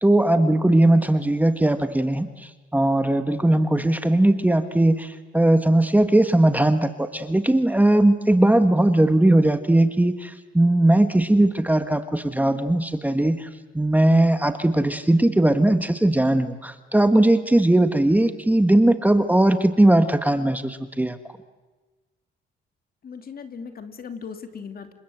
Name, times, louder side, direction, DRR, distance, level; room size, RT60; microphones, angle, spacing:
voice 1, 0.0-13.5 13.7-21.2, right 1 dB, 10° right, 10 dB, 1.4 m, -19 dB
voice 2, 23.0-24.9, left 6 dB, 50° left, 8 dB, 2.9 m, -38 dB
29.0 x 25.5 x 8.0 m, 1.3 s
cardioid pair, 90°, 20 cm